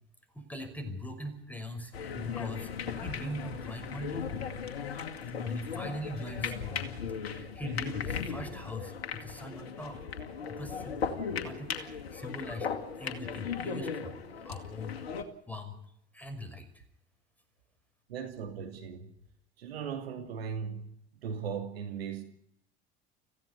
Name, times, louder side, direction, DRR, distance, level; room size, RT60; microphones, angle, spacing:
voice 1, 0.3-4.3 5.4-6.9 7.2-10.1 10.5-12.7 13.0-15.0 15.5-15.7 16.1-16.7, left 1 dB, 5° left, 9 dB, 5.7 m, -41 dB
sound 1, 1.9-15.2, left 6 dB, 70° left, 2.3 m, -37 dB
voice 2, 18.1-19.1 19.6-22.2, right 7 dB, 70° right, 5 dB, 2.8 m, -38 dB
25.5 x 15.5 x 9.9 m, 0.75 s
figure-of-eight pair, 70°, 31 cm